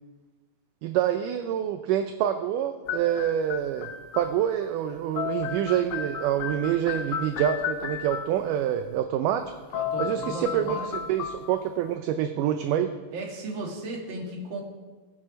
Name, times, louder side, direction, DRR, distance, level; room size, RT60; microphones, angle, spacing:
voice 1, 0.8-9.5 10.0-10.8 11.1-12.9, right 10 dB, 80° right, 8 dB, 1.9 m, -26 dB
sound 1, 2.9-4.7 4.9-8.5 9.4-9.5 9.7-11.9, left 7 dB, 75° left, 1.6 m, -33 dB
voice 2, 9.7-10.9 13.1-14.6, right 2 dB, 40° right, -1 dB, 2.3 m, -35 dB
18.0 x 7.3 x 5.2 m, 1.3 s
omnidirectional pair, 4.3 m